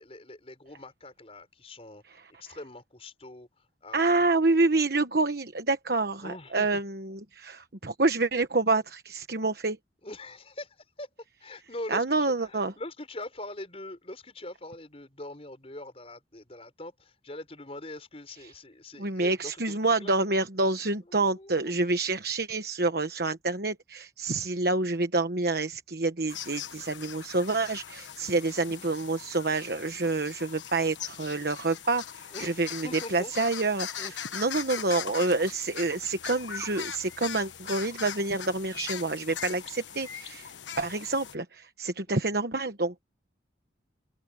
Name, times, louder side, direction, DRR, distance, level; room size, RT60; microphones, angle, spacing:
voice 1, 0.0-4.4 6.2-6.8 10.0-11.1 11.4-20.2 21.1-21.5 26.6-27.0 30.6-30.7 32.3-33.3 34.0-34.3 42.1-42.2, left 1 dB, 35° left, 5.4 m, -43 dB
voice 2, 3.9-9.8 11.9-12.7 19.0-34.0 34.3-43.0, right 3 dB, 55° right, 1.2 m, -28 dB
sound 1, 26.3-41.3, left 9 dB, 90° left, 1.4 m, -40 dB
head